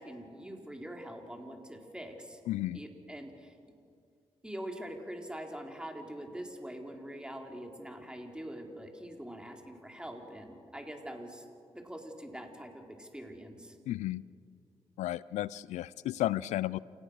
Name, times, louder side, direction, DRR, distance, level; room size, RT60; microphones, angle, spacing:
voice 1, 0.0-2.4 2.7-3.5 4.4-11.4 11.7-13.7, right 1 dB, 5° right, 2 dB, 4.3 m, -44 dB
voice 2, 2.5-2.8 13.9-14.2 15.0-16.8, left 14 dB, 80° left, 21 dB, 0.5 m, -33 dB
28.5 x 17.5 x 6.6 m, 2.3 s
supercardioid pair, 45°, 12 cm